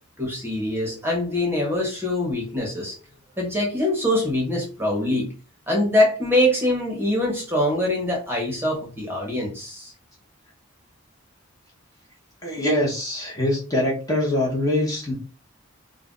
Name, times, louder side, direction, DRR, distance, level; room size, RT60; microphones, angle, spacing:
voice 1, 0.2-3.0 3.4-5.3 5.7-9.9, left 1 dB, 10° right, -1 dB, 0.9 m, -23 dB
voice 2, 12.4-15.1, left 1 dB, 15° left, -3 dB, 0.8 m, -23 dB
2.4 x 2.1 x 3.7 m, 0.35 s
head